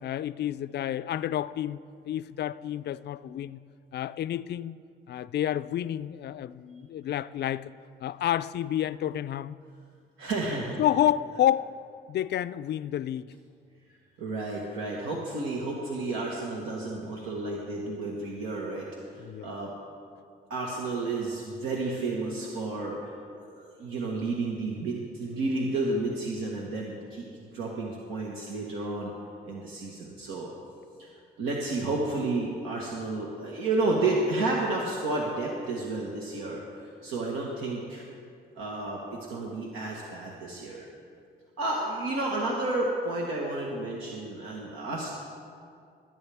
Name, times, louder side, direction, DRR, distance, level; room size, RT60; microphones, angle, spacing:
voice 1, 0.0-1.8 2.1-3.6 3.9-4.8 5.1-7.7 8.0-9.5 10.8-11.7 12.1-13.3 19.2-19.5, left 11 dB, 60° left, 0.4 m, -29 dB
voice 2, 10.2-10.8 14.2-19.7 20.5-23.1 23.6-29.1 29.4-30.5 31.0-31.1 31.4-38.0 38.5-40.9 41.6-45.2, right 2 dB, 85° right, 1.5 m, -31 dB
21.5 x 9.0 x 3.5 m
cardioid pair, 90°, 20 cm